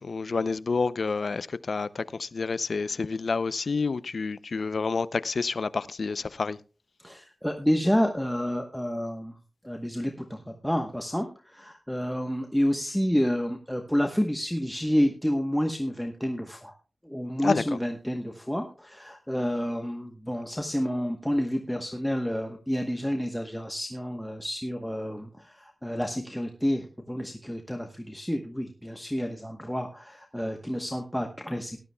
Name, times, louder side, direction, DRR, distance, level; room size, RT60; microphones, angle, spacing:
voice 1, 0.0-6.6 17.4-17.6, left 4 dB, 70° left, 0.4 m, -29 dB
voice 2, 7.0-9.4 9.6-16.7 17.0-31.8, equal, 5° left, 1.0 m, -29 dB
18.0 x 12.0 x 2.2 m
wide cardioid pair, 90°, 0 cm